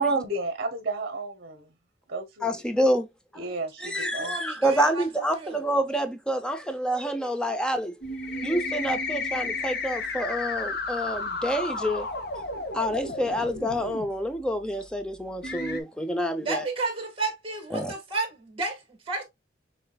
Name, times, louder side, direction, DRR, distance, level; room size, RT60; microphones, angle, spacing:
voice 1, 0.0-1.7 2.1-2.6 3.4-4.4, right 3 dB, 50° right, 1.0 m, -31 dB
voice 2, 2.4-3.1 3.3-3.5 3.8-7.9 8.4-12.1 12.7-16.6 17.7-17.9, equal, 5° left, 0.5 m, -28 dB
voice 3, 3.8-5.7 16.4-19.2, right 3 dB, 30° right, 1.7 m, -32 dB
sound 1, 8.0-14.1 14.8-14.9 15.4-15.8, left 3 dB, 55° left, 1.0 m, -32 dB
6.1 x 3.2 x 2.3 m
head